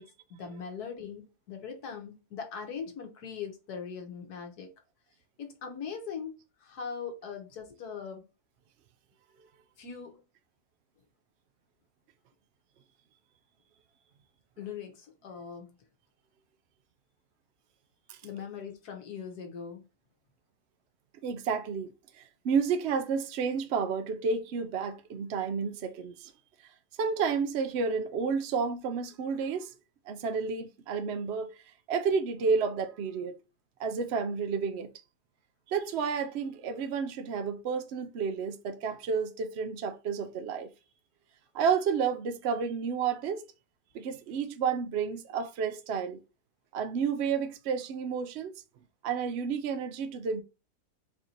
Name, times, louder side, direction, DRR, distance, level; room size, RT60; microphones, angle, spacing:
voice 1, 0.0-4.7 5.4-8.2 9.8-10.2 14.6-15.8 18.2-19.8, left 6 dB, 70° left, 1.5 m, -41 dB
voice 2, 21.2-21.9 22.4-26.3 27.0-29.7 30.1-31.6 31.9-33.4 33.8-34.9 35.7-40.7 41.5-43.4 43.9-46.2 46.7-48.6 49.0-50.4, right 6 dB, 65° right, 0.6 m, -31 dB
4.5 x 2.7 x 4.3 m
omnidirectional pair, 1.7 m